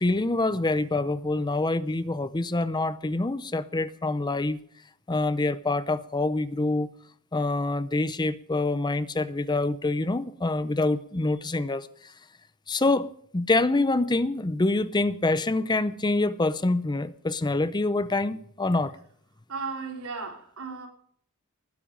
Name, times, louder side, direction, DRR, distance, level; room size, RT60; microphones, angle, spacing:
voice 1, 0.0-4.6 5.1-6.9 7.3-12.1 12.7-18.9, left 2 dB, 20° left, 0.6 m, -26 dB
voice 2, 19.5-20.9, right 4 dB, 85° right, 3.7 m, -35 dB
20.0 x 10.0 x 5.3 m
head